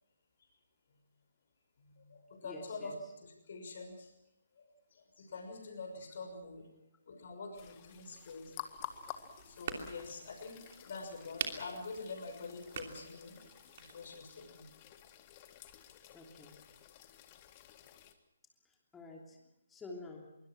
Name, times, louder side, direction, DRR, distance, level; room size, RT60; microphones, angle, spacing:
voice 1, 1.8-3.0 3.2-4.1 4.5-4.6 4.9-6.7 7.1-8.5 9.4-13.4 13.8-14.7, left 3 dB, 45° left, 4 dB, 6.3 m, -46 dB
voice 2, 2.4-3.0 16.1-16.5 18.6-19.4 19.7-20.4, left 3 dB, 10° left, 0 dB, 3.2 m, -49 dB
sound 1, 7.5-18.1, left 12 dB, 25° left, 1.8 m, -52 dB
sound 2, 8.8-14.1, right 7 dB, 40° right, 3.0 m, -46 dB
25.0 x 23.5 x 6.2 m, 0.88 s
figure-of-eight pair, 135°, 0 cm